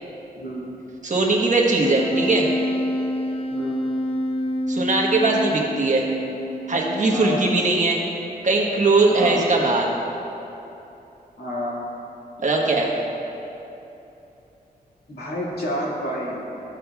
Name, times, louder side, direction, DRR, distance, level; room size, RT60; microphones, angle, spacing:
voice 1, 0.4-0.7 3.5-3.8 7.1-7.4 9.1-9.5 11.4-11.8 15.1-16.5, equal, 80° left, -5 dB, 2.0 m, -29 dB
voice 2, 1.0-2.5 4.7-6.1 6.7-8.0 8.4-9.9 12.4-12.9, right 3 dB, 50° right, -2 dB, 1.1 m, -20 dB
Wind instrument woodwind instrument, 1.8-7.5, equal, 35° left, 0.4 m, -27 dB
14.0 x 7.5 x 2.3 m, 3.0 s
wide cardioid pair, 135°, 16 cm